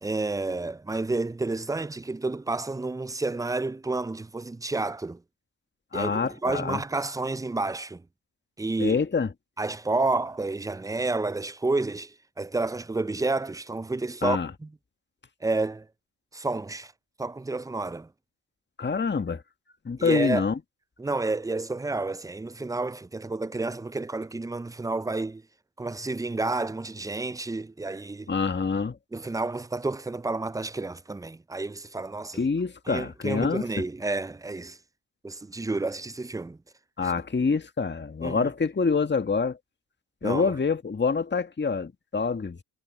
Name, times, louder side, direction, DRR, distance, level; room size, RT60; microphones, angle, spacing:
voice 1, 0.0-5.2 5.9-8.0 8.6-9.0 9.6-14.7 15.4-15.9 16.3-16.9 17.2-18.1 20.0-20.5 21.0-25.4 25.8-28.3 29.1-32.4 32.9-34.8 35.2-36.6 37.0-37.1 38.2-38.5 40.2-40.5, right 3 dB, 5° right, 0.5 m, -30 dB
voice 2, 5.9-6.8 8.8-9.3 14.2-14.5 18.8-19.4 19.8-20.6 28.3-29.0 32.4-33.6 37.0-39.6 40.2-42.6, left 5 dB, 20° left, 1.7 m, -26 dB
hypercardioid pair, 60°, 49 cm